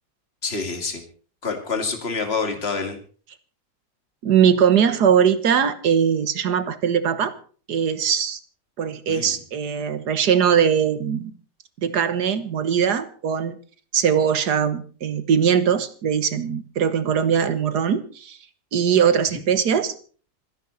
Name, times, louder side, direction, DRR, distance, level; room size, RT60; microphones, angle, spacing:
voice 1, 0.4-1.0 1.4-3.0 9.1-9.4, left 4 dB, 40° left, 6 dB, 2.8 m, -27 dB
voice 2, 4.2-7.3 7.7-8.4 8.8-11.3 11.8-13.6 13.9-18.4 18.7-19.9, right 8 dB, 80° right, 12 dB, 1.8 m, -20 dB
26.5 x 10.5 x 4.1 m, 0.41 s
omnidirectional pair, 1.7 m